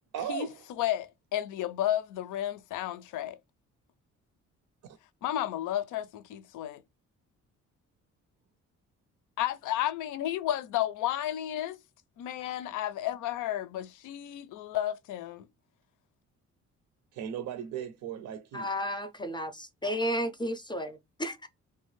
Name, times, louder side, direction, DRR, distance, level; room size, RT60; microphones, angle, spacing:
voice 1, 0.1-0.5 4.8-5.0 17.1-18.7, right 9 dB, 75° right, 0.6 m, -37 dB
voice 2, 0.8-3.4 5.2-6.8 9.4-11.8 12.2-15.5, left 12 dB, 80° left, 0.5 m, -32 dB
voice 3, 18.5-21.5, equal, 15° left, 0.5 m, -33 dB
2.9 x 2.2 x 3.1 m
cardioid pair, 90°, 30 cm